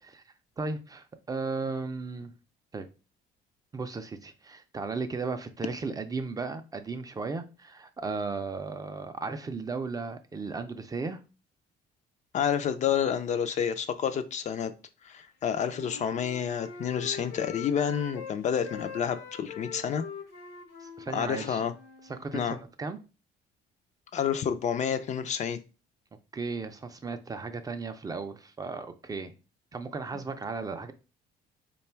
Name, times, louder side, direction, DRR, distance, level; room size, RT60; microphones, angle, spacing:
voice 1, 0.6-2.3 2.7-2.9 3.7-11.2 20.8-21.6 22.1-23.0 26.3-29.3 29.7-30.9, right 4 dB, 20° right, 0.4 m, -35 dB
voice 2, 12.3-14.7 15.0-20.0 21.1-21.7 22.3-22.6 24.1-25.6, left 8 dB, 45° left, 0.4 m, -29 dB
Wind instrument woodwind instrument, 15.7-18.3 18.6-22.3, left 6 dB, 75° left, 0.8 m, -43 dB
3.2 x 2.2 x 4.3 m
cardioid pair, 110°, 17 cm